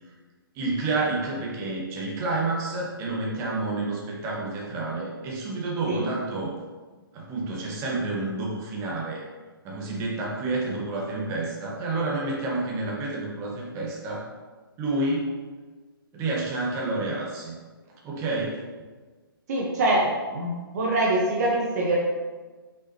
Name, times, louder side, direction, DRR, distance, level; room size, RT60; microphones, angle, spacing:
voice 1, 0.5-6.5 7.1-9.2 9.6-14.3 14.8-15.3 16.1-17.6 18.0-18.6, right 2 dB, 25° right, -3 dB, 1.4 m, -29 dB
voice 2, 19.5-22.0, right 2 dB, 45° right, -3 dB, 1.2 m, -24 dB
6.1 x 5.7 x 3.0 m, 1.3 s
figure-of-eight pair, 135°, 12 cm